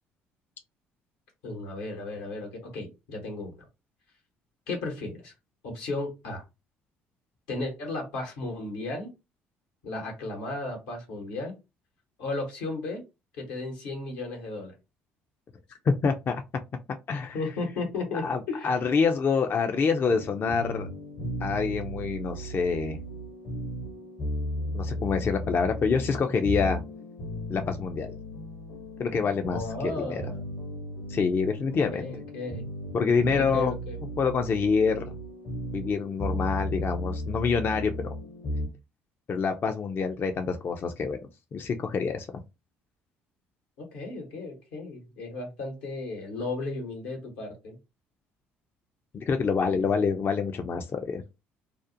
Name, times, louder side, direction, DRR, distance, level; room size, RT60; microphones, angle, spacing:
voice 1, 1.4-3.6 4.7-5.3 5.6-6.4 7.5-9.1 9.8-11.5 12.2-13.0 13.3-14.7 17.3-18.8 29.5-30.4 31.9-32.6 33.3-34.0 43.8-47.8 49.7-49.9, left 2 dB, 80° left, 2 dB, 1.0 m, -34 dB
voice 2, 15.9-16.4 17.1-17.4 18.1-20.9 21.4-23.0 24.7-26.8 27.5-28.2 29.0-30.2 31.1-32.1 32.9-33.7 34.2-35.1 35.7-38.1 39.3-41.2 41.5-42.3 49.1-51.2, left 5 dB, 40° left, 6 dB, 0.4 m, -26 dB
sound 1, 20.1-38.7, equal, 60° left, 0.8 m, -35 dB
2.5 x 2.0 x 2.6 m, 0.25 s
hypercardioid pair, 65°, 5 cm